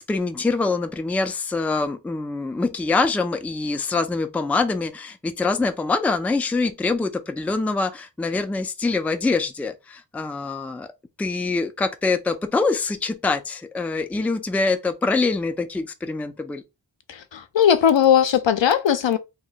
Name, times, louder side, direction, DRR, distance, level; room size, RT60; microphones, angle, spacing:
voice 1, 0.0-10.9 11.2-16.6, left 3 dB, 5° left, 0.3 m, -24 dB
voice 2, 17.1-19.2, left 9 dB, 75° left, 0.6 m, -18 dB
2.9 x 2.2 x 3.9 m
wide cardioid pair, 65°, 45 cm